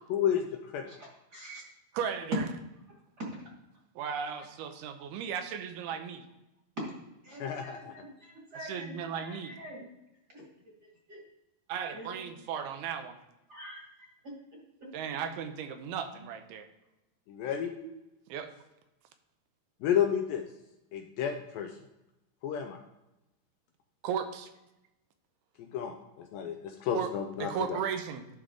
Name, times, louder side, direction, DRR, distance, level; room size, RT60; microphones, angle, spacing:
voice 1, 0.1-0.9 7.4-7.9 17.3-17.7 19.8-20.5 20.9-21.8 22.4-22.8 25.6-27.8, left 9 dB, 80° left, 4 dB, 2.1 m, -31 dB
voice 2, 1.3-1.6 3.2-3.3 4.4-4.5 7.2-9.9 10.3-10.4 10.8-11.2 11.9-12.3 13.5-14.9, right 1 dB, 40° right, -3 dB, 1.5 m, -46 dB
voice 3, 1.9-2.4 4.0-6.3 8.6-9.6 11.7-13.2 14.9-16.7 17.8-17.9 18.3-18.5 24.0-24.5 26.9-27.1 27.4-28.3, right 7 dB, 85° right, 7 dB, 2.6 m, -35 dB
11.5 x 4.9 x 3.7 m, 0.94 s
omnidirectional pair, 4.5 m